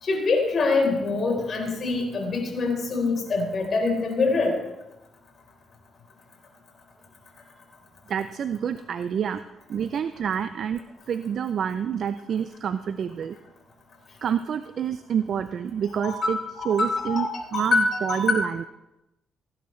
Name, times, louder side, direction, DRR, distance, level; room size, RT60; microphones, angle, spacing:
voice 1, 0.0-4.6 15.8-16.3 16.5-18.3, left 3 dB, 50° left, 1 dB, 3.9 m, -25 dB
voice 2, 8.1-9.4 9.7-10.8 11.1-13.4 14.2-16.4 16.7-17.3 17.5-18.6, right 8 dB, 60° right, 12 dB, 0.4 m, -27 dB
17.5 x 10.5 x 3.2 m, 0.94 s
cardioid pair, 90°, 0 cm